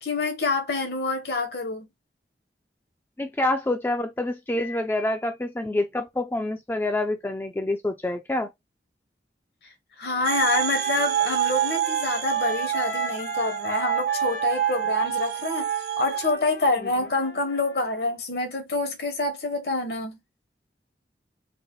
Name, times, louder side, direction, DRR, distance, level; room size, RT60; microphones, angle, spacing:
voice 1, 0.0-1.9 10.0-15.7 16.0-20.2, left 2 dB, 65° left, 1.0 m, -27 dB
voice 2, 3.2-8.5, left 1 dB, 10° left, 0.3 m, -27 dB
Trumpet, 10.0-18.2, left 2 dB, 80° left, 1.6 m, -39 dB
sound 1, 10.2-16.3, right 11 dB, 70° right, 0.3 m, -27 dB
3.9 x 2.1 x 3.0 m
head